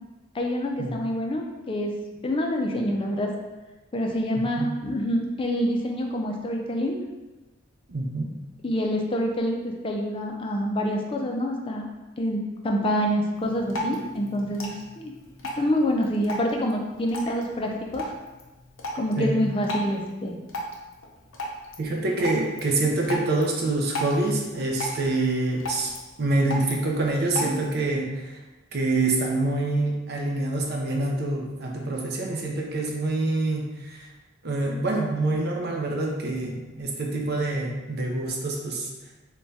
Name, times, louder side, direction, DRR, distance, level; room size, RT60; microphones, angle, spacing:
voice 1, 0.3-1.9 2.2-3.3 3.9-7.0 8.6-11.9 12.2-15.1 15.6-18.1 18.9-20.4, equal, 25° left, 1 dB, 0.4 m, -26 dB
voice 2, 4.4-4.7 7.9-8.3 19.2-19.4 21.8-25.9 26.2-28.4 28.7-34.1 34.4-38.9, right 2 dB, 55° right, 0 dB, 0.5 m, -26 dB
Drip, 13.4-27.9, equal, 85° left, 0.6 m, -37 dB
3.4 x 2.2 x 4.0 m, 1.1 s
head